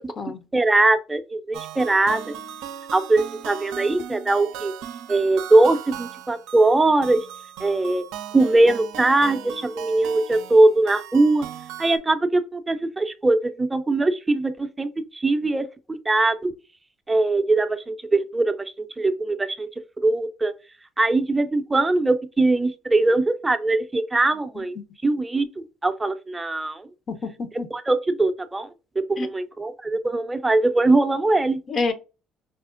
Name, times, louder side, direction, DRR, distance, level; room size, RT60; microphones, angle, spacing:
voice 1, 0.0-0.4 24.5-24.6 27.1-27.7 29.2-29.3 31.7-31.9, left 4 dB, 50° left, 0.7 m, -28 dB
voice 2, 0.5-2.3 2.9-4.7 5.1-7.3 7.6-8.0 8.3-11.5 11.8-16.5 17.1-19.7 20.0-20.5 21.0-24.8 25.0-26.9 27.7-28.7 29.1-31.6, right 2 dB, 20° right, 0.5 m, -21 dB
sound 1, 1.5-12.0, right 9 dB, 80° right, 0.4 m, -37 dB
4.9 x 2.0 x 2.5 m
hypercardioid pair, 60°, 0 cm